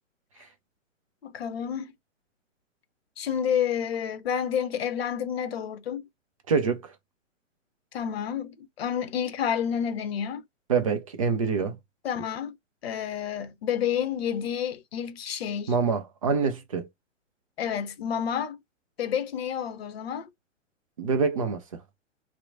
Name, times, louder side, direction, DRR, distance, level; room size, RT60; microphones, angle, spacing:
voice 1, 1.2-1.9 3.2-6.1 7.9-10.4 12.0-12.5 12.8-15.7 17.6-18.6 19.0-20.3, left 8 dB, 50° left, 0.7 m, -29 dB
voice 2, 6.5-6.9 10.7-11.8 15.7-16.9 21.0-21.8, right 5 dB, 30° right, 0.4 m, -26 dB
2.9 x 2.0 x 2.4 m
figure-of-eight pair, 125°, 39 cm